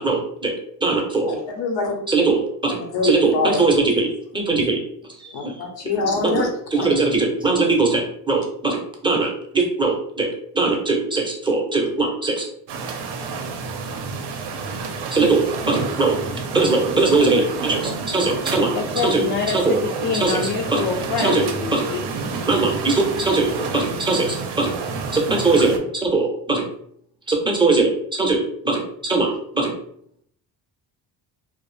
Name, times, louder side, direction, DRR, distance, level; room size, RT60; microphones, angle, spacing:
voice 1, 0.0-0.5 0.8-1.3 2.1-2.8 3.0-4.8 5.2-5.5 6.2-6.4 6.7-10.3 10.5-12.5 15.1-16.2 16.5-18.7 19.0-19.3 19.5-19.8 20.2-20.4 20.7-20.9 21.2-21.9 22.5-24.7 25.1-26.7 27.3-29.7, right 3 dB, 10° right, 1 dB, 0.5 m, -21 dB
voice 2, 1.2-2.0 2.7-3.8 5.3-6.9, left 3 dB, 80° left, 2 dB, 0.8 m, -25 dB
sound 1, 12.7-25.8, right 4 dB, 65° right, 0.5 m, -29 dB
voice 3, 14.6-15.0 18.6-22.0, left 5 dB, 55° left, 0 dB, 0.5 m, -26 dB
2.3 x 2.0 x 3.1 m, 0.67 s
cardioid pair, 105°, 43 cm